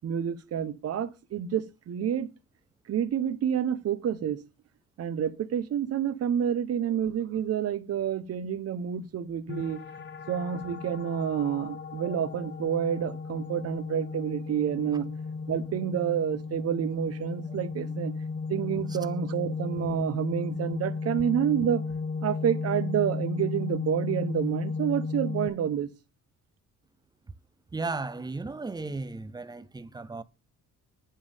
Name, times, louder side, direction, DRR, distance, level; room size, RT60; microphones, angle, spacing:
voice 1, 0.0-2.3 2.9-4.4 5.0-9.8 10.3-15.1 15.5-18.1 18.5-21.8 22.2-25.9, right 9 dB, 50° right, 1.0 m, -29 dB
sound 1, 9.5-25.5, left 4 dB, 35° left, 0.8 m, -35 dB
voice 2, 27.7-30.2, right 3 dB, 15° right, 0.5 m, -36 dB
10.0 x 7.5 x 3.5 m
cardioid pair, 135°, 32 cm